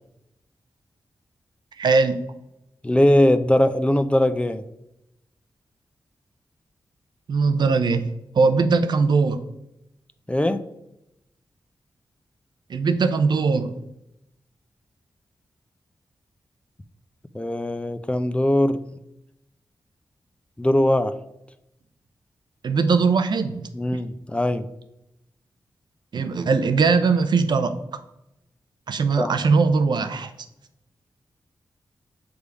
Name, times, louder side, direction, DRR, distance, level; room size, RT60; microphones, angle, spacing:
voice 1, 1.8-2.2 7.3-8.1 8.3-9.4 12.7-13.8 22.6-23.6 23.9-24.0 26.1-28.0 28.9-30.3, right 4 dB, 70° right, 9 dB, 0.6 m, -20 dB
voice 2, 2.8-4.6 10.3-10.7 17.3-18.8 20.6-21.2 23.7-24.6 29.2-29.3, left 1 dB, 15° left, 10 dB, 0.5 m, -20 dB
6.7 x 3.5 x 4.8 m, 0.85 s
cardioid pair, 55°, 8 cm